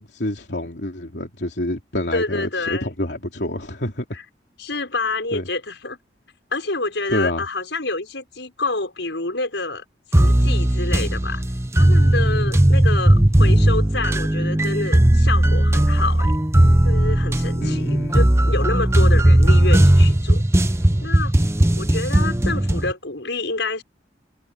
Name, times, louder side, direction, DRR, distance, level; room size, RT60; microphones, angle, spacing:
voice 1, 0.0-4.0 5.3-5.4 7.1-7.4 17.6-18.2, left 1 dB, 70° left, 3.3 m, -27 dB
voice 2, 2.1-2.9 4.1-4.2 4.6-6.0 6.5-9.8 10.1-11.4 11.8-16.3 16.8-20.4 21.0-21.3 21.7-23.8, left 3 dB, 90° left, 5.7 m, -27 dB
sound 1, 10.1-22.9, right 1 dB, 15° right, 0.9 m, -17 dB
head